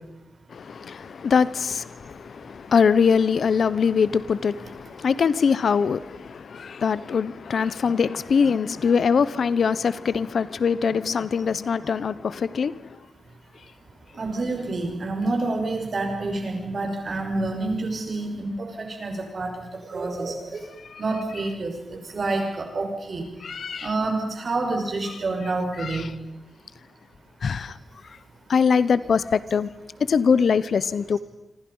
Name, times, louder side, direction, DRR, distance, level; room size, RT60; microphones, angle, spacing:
voice 1, 0.5-12.7 20.9-21.0 23.4-23.9 25.8-26.1 27.4-27.7 28.5-29.7 30.1-31.2, left 6 dB, 70° left, 0.9 m, -23 dB
voice 2, 14.1-19.5 19.9-20.6 21.0-23.3 23.8-26.1, right 2 dB, 50° right, 5.9 m, -28 dB
27.5 x 26.0 x 5.6 m
wide cardioid pair, 120°, 0 cm